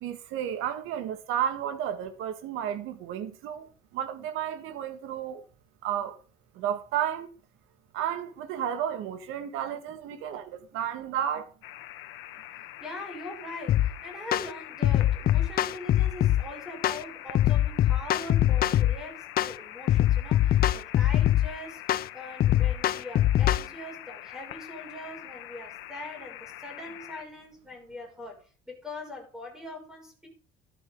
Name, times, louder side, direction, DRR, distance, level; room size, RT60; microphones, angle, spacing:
voice 1, 0.0-5.4 5.8-6.2 6.6-7.3 7.9-11.5, right 10 dB, 85° right, 1.9 m, -32 dB
sound 1, 11.6-27.2, left 14 dB, 85° left, 1.4 m, -44 dB
voice 2, 12.8-30.3, left 2 dB, 5° right, 5.9 m, -42 dB
sound 2, 13.7-13.9 14.3-14.5 14.8-16.4 16.8-17.0 17.4-19.0 19.4-19.6 19.9-21.5 21.9-22.1 22.4-23.7, left 12 dB, 45° left, 0.6 m, -22 dB
13.0 x 12.0 x 3.8 m
cardioid pair, 135°, 21 cm